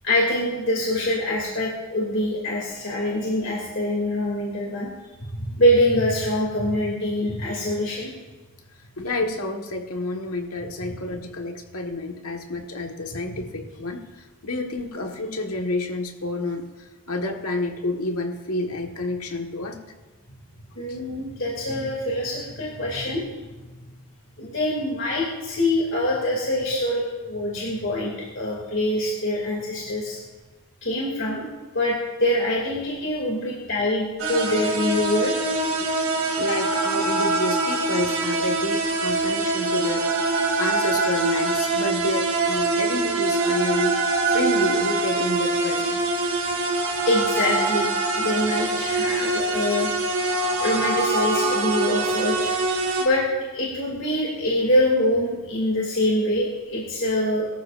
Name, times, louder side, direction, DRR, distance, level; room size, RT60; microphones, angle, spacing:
voice 1, 0.0-4.9 5.3-8.1 20.8-23.2 24.4-30.2 30.8-31.5 31.7-35.4 47.1-49.9 50.6-52.4 53.0-53.3 53.5-57.5, left 1 dB, 55° left, -4 dB, 2.7 m, -24 dB
voice 2, 9.0-19.8 20.9-21.0 35.8-46.0, left 2 dB, 85° left, 3 dB, 1.6 m, -29 dB
sound 1, 34.2-53.0, right 3 dB, 75° right, 2.9 m, -24 dB
22.5 x 13.5 x 2.6 m, 1.3 s
head